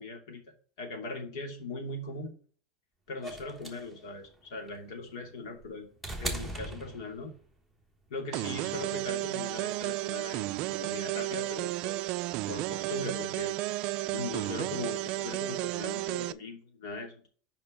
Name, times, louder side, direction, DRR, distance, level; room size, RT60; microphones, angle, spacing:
voice 1, 0.0-2.3 3.1-5.9 6.2-7.3 8.1-12.0 12.5-13.6 14.0-17.3, left 2 dB, 85° left, 3 dB, 2.6 m, -40 dB
sound 1, 3.2-7.5 8.7-8.8, right 1 dB, 5° left, 1.2 m, -39 dB
sound 2, 8.3-16.3, right 18 dB, 45° right, 0.4 m, -33 dB
5.3 x 5.2 x 5.7 m, 0.44 s
supercardioid pair, 165°, 2 cm